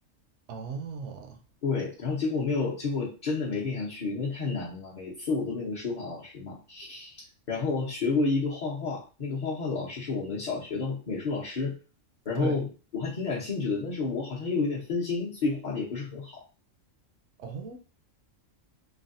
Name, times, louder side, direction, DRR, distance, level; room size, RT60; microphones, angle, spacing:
voice 1, 0.5-1.4 12.4-12.6 17.4-17.8, right 6 dB, 70° right, 0.8 m, -36 dB
voice 2, 1.6-7.2 7.5-11.8 12.2-12.7 12.9-16.4, left 4 dB, 45° left, 0.8 m, -30 dB
3.3 x 2.2 x 2.5 m
omnidirectional pair, 1.3 m